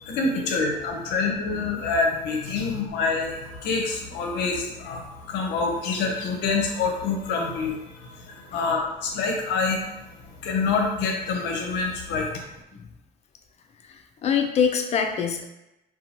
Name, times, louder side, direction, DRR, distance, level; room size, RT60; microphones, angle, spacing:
voice 1, 0.0-10.0 10.4-12.4, left 4 dB, 85° left, 1 dB, 0.6 m, -26 dB
voice 2, 13.9-15.4, left 7 dB, 40° left, 4 dB, 0.4 m, -25 dB
2.7 x 2.2 x 2.8 m, 0.92 s
cardioid pair, 110°, 17 cm